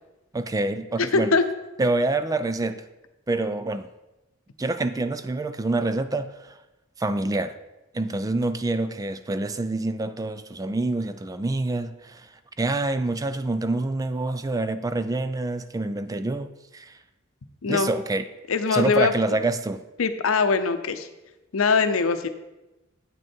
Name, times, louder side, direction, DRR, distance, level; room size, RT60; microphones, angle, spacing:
voice 1, 0.3-1.3 1.8-2.8 3.3-3.9 4.6-6.6 7.0-7.6 7.9-12.3 12.6-17.0 17.7-18.2 18.7-19.8, right 2 dB, 15° right, 11 dB, 0.3 m, -26 dB
voice 2, 1.0-1.4 17.6-17.9 18.5-19.1 20.0-21.1 21.5-22.3, left 4 dB, 85° left, 10 dB, 0.6 m, -22 dB
8.6 x 6.3 x 4.4 m, 1.0 s
head